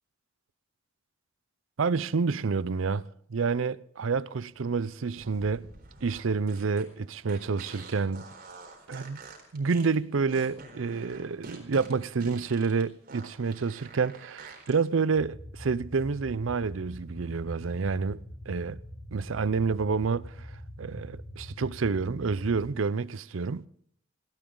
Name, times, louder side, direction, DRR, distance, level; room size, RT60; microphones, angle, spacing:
voice 1, 1.8-3.0 3.3-5.6 6.0-8.2 8.9-9.2 9.5-18.2 18.5-18.8 19.1-20.5 20.8-23.7, right 4 dB, 80° right, 0.6 m, -28 dB
sound 1, 5.1-14.8, right 3 dB, 50° right, 4.2 m, -47 dB
sound 2, 15.1-22.7, equal, 55° left, 7.2 m, -43 dB
18.5 x 17.0 x 3.9 m
head